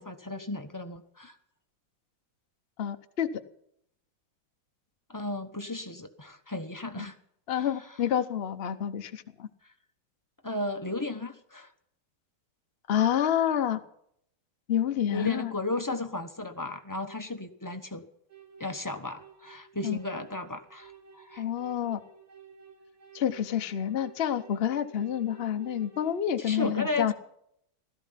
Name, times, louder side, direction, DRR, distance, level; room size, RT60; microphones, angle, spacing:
voice 1, 0.0-1.4 5.1-7.2 7.5-7.7 10.4-11.7 15.1-18.0 18.6-21.4 26.4-27.1, left 2 dB, 20° left, 6 dB, 0.5 m, -34 dB
voice 2, 2.8-3.3 7.0-7.1 7.5-9.5 12.9-13.8 14.7-15.5 19.8-20.0 21.4-22.0 23.1-27.1, left 9 dB, 85° left, 9 dB, 0.5 m, -28 dB
sound 1, 18.3-26.2, right 7 dB, 65° right, 4.3 m, -53 dB
16.5 x 14.0 x 5.7 m, 0.73 s
omnidirectional pair, 2.3 m